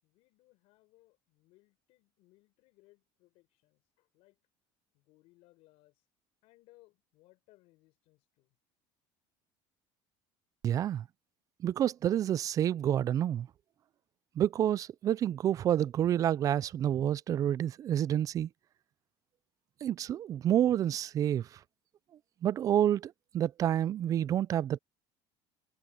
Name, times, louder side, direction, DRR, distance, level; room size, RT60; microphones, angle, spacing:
voice 1, 0.0-4.4 4.9-6.1 6.4-8.6, left 20 dB, 70° left, 6.3 m, -65 dB
voice 2, 10.6-11.1 11.6-13.5 14.4-18.5 19.8-21.6 22.4-24.8, right 10 dB, 35° right, 0.3 m, -29 dB
cardioid pair, 145°, 11 cm